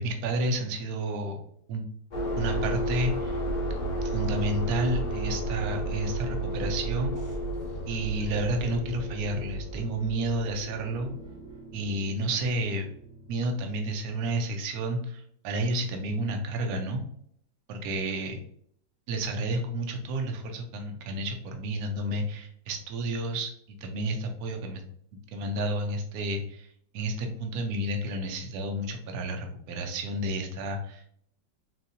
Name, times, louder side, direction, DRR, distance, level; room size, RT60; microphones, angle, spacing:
voice 1, 0.0-1.4 1.7-1.8 2.4-3.4 4.0-7.1 7.9-11.1 11.7-12.9 13.3-17.0 17.7-18.4 19.1-23.5 23.8-24.8 25.3-26.7 26.9-31.1, right 1 dB, 65° right, 4 dB, 0.9 m, -31 dB
sound 1, 2.1-11.6, right 1 dB, 45° left, 0.5 m, -32 dB
sound 2, 7.1-13.7, right 1 dB, 10° left, 1.3 m, -46 dB
4.1 x 2.7 x 2.6 m, 0.67 s
omnidirectional pair, 2.0 m